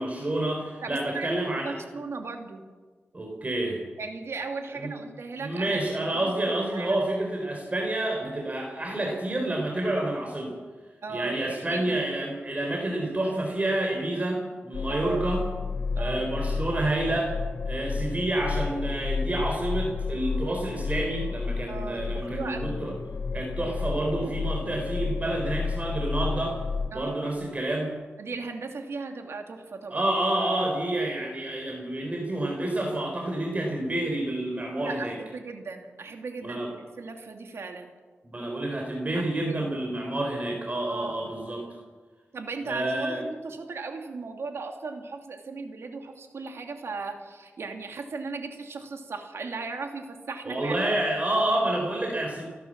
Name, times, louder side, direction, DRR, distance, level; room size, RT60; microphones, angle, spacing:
voice 1, 0.0-1.8 3.1-3.8 4.7-4.9 5.4-10.6 11.1-15.4 16.0-17.4 17.7-23.0 23.3-26.6 26.9-27.9 29.9-35.2 36.4-36.7 38.2-41.7 42.6-43.2 50.4-52.4, right 1 dB, 35° right, 1 dB, 4.0 m, -29 dB
voice 2, 0.8-2.6 4.0-5.8 6.1-6.3 6.7-7.0 11.0-12.0 14.9-15.2 16.0-16.3 21.7-23.0 26.9-27.3 28.2-30.1 34.8-36.6 37.0-37.9 39.1-39.7 40.9-41.1 42.3-50.7, right 4 dB, 75° right, 4 dB, 2.8 m, -37 dB
sound 1, 14.7-26.9, left 4 dB, 90° left, 2.5 m, -31 dB
29.5 x 11.5 x 7.6 m, 1.4 s
cardioid pair, 70°, 4 cm